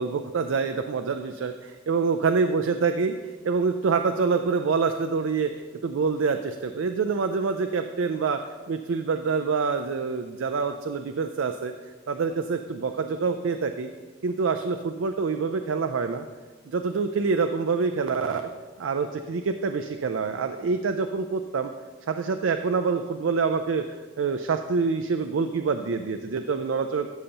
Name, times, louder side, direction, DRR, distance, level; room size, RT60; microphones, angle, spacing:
voice 1, 0.0-3.2 3.4-5.5 5.8-8.4 8.7-11.7 12.1-13.9 14.2-16.3 16.7-18.4 18.8-21.7 22.1-27.1, right 5 dB, 80° right, 7 dB, 0.4 m, -26 dB
14.0 x 6.7 x 2.9 m, 1.4 s
head